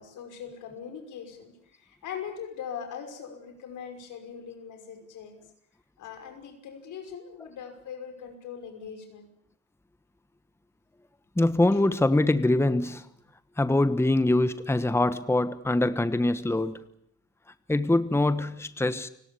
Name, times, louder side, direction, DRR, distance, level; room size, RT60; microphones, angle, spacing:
voice 1, 0.0-5.4 6.0-9.3, left 7 dB, 80° left, 6 dB, 5.7 m, -41 dB
voice 2, 11.4-13.1 13.6-16.8 17.7-19.1, left 2 dB, 10° left, 13 dB, 1.2 m, -24 dB
30.0 x 17.5 x 8.4 m, 0.71 s
cardioid pair, 90°, 30 cm